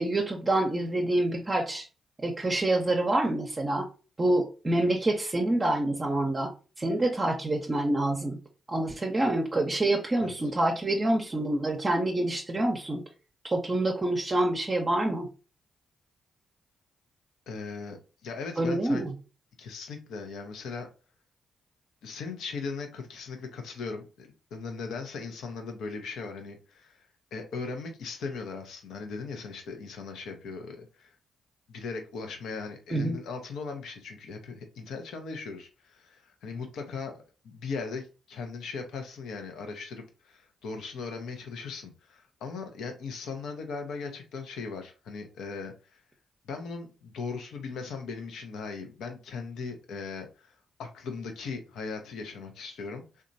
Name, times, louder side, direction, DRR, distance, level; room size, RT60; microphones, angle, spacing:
voice 1, 0.0-1.8 2.2-3.9 4.2-6.5 6.8-8.4 8.7-13.0 13.4-15.3 18.6-19.1 32.9-33.2, right 1 dB, 35° right, 1 dB, 0.6 m, -27 dB
voice 2, 10.2-10.5 17.5-19.0 19.6-20.9 22.0-31.1 31.7-46.0 46.4-53.2, left 4 dB, 75° left, 4 dB, 0.6 m, -38 dB
2.9 x 2.3 x 2.5 m, 0.33 s
hypercardioid pair, 45°, 0 cm